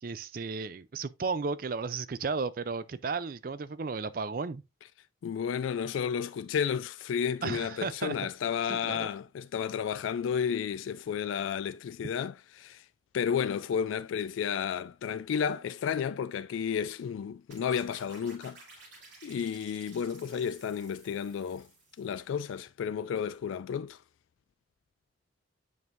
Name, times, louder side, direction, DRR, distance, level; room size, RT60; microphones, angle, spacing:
voice 1, 0.0-4.6 7.4-8.3 8.7-9.1 12.0-12.1, right 4 dB, 45° right, 0.4 m, -34 dB
voice 2, 5.2-12.9 13.1-18.6 19.2-21.7 22.0-24.0, left 7 dB, 90° left, 0.3 m, -32 dB
sound 1, 17.5-22.3, right 3 dB, 65° right, 2.8 m, -54 dB
9.3 x 5.4 x 2.5 m
head